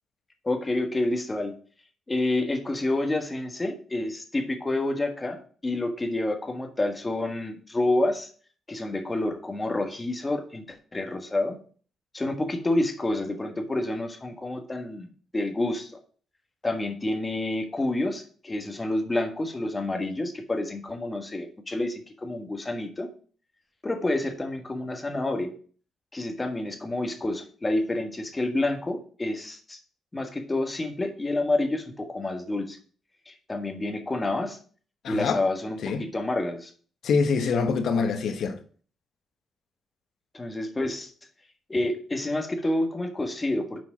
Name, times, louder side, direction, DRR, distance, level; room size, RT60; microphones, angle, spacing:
voice 1, 0.4-1.5 2.1-8.3 8.7-11.6 12.1-15.1 15.3-15.9 16.6-23.1 23.8-25.5 26.1-29.8 30.1-32.8 33.3-34.6 35.1-36.7 40.3-41.1 41.7-43.8, left 2 dB, 20° left, 1.4 m, -28 dB
voice 2, 35.0-35.4 35.8-36.1 37.0-38.6, left 5 dB, 65° left, 1.1 m, -25 dB
6.2 x 4.6 x 6.1 m
cardioid pair, 110°, 0 cm